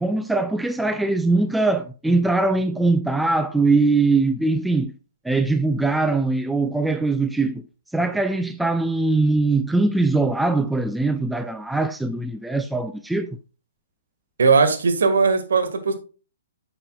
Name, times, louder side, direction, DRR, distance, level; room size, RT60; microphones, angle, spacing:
voice 1, 0.0-4.9 5.2-7.6 7.9-13.4, right 3 dB, 5° right, 0.4 m, -21 dB
voice 2, 14.4-15.9, right 4 dB, 65° right, 1.7 m, -18 dB
9.7 x 6.8 x 2.3 m
figure-of-eight pair, 125°, 0 cm